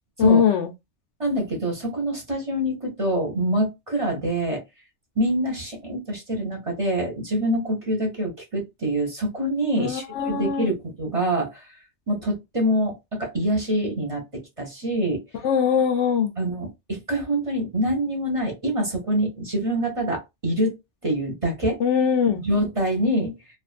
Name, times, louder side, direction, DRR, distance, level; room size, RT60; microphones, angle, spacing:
voice 1, 0.2-0.7 9.8-10.7 15.4-16.3 21.8-22.4, left 7 dB, 80° left, 0.9 m, -21 dB
voice 2, 1.2-4.6 5.2-11.7 12.1-15.2 16.4-20.8 21.0-21.8 22.4-23.4, right 1 dB, 30° right, 0.8 m, -25 dB
2.4 x 2.4 x 2.4 m
omnidirectional pair, 1.2 m